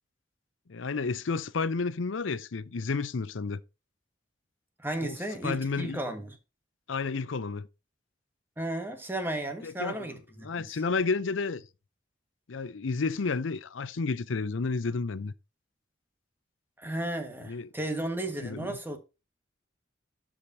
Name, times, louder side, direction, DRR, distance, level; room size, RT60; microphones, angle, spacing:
voice 1, 0.7-3.6 5.0-5.2 5.4-6.0 6.9-7.7 9.6-10.1 10.4-11.6 12.5-15.3 17.4-17.7 18.4-18.8, left 4 dB, 85° left, 0.6 m, -31 dB
voice 2, 4.8-6.3 8.6-10.7 16.8-19.0, right 1 dB, 10° right, 1.6 m, -34 dB
13.0 x 5.0 x 2.7 m
head